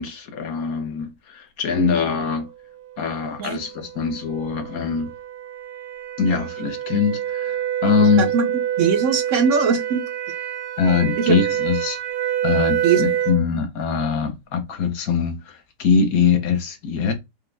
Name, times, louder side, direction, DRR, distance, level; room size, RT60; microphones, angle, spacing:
voice 1, 0.0-2.5 3.0-5.1 6.2-8.3 10.8-12.0 12.4-17.1, left 6 dB, 60° left, 1.4 m, -22 dB
sound 1, 3.5-13.5, right 11 dB, 80° right, 1.5 m, -26 dB
voice 2, 8.0-8.5 8.8-10.0 11.2-11.4 12.8-13.0, right 5 dB, 65° right, 0.8 m, -21 dB
5.2 x 2.4 x 3.3 m
omnidirectional pair, 1.8 m